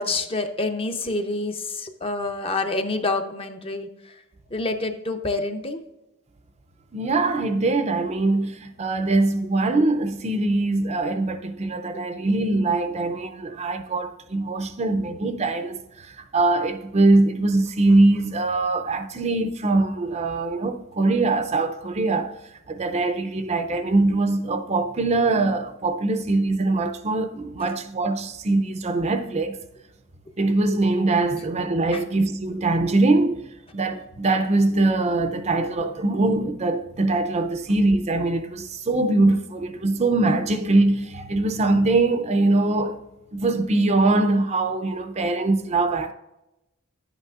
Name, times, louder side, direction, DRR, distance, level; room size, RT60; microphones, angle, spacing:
voice 1, 0.0-3.9 4.5-5.8 31.3-31.4 31.9-32.0, left 2 dB, 25° left, 0.6 m, -27 dB
voice 2, 6.9-22.3 22.7-29.6 30.4-33.4 33.7-43.0 43.3-46.1, right 2 dB, 30° right, 0.5 m, -22 dB
10.5 x 8.1 x 2.4 m
head